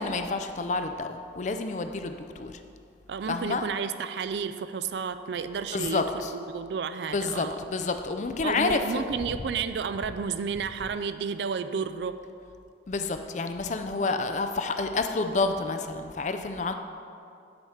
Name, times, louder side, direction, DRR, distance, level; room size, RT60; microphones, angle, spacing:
voice 1, 0.0-2.6 3.3-3.7 5.7-6.3 7.1-9.1 12.9-16.7, left 3 dB, 40° left, 7 dB, 0.4 m, -29 dB
voice 2, 3.1-6.0 6.3-7.6 8.4-12.1 14.0-14.2, right 6 dB, 65° right, 11 dB, 0.4 m, -31 dB
8.7 x 4.8 x 5.7 m, 2.4 s
head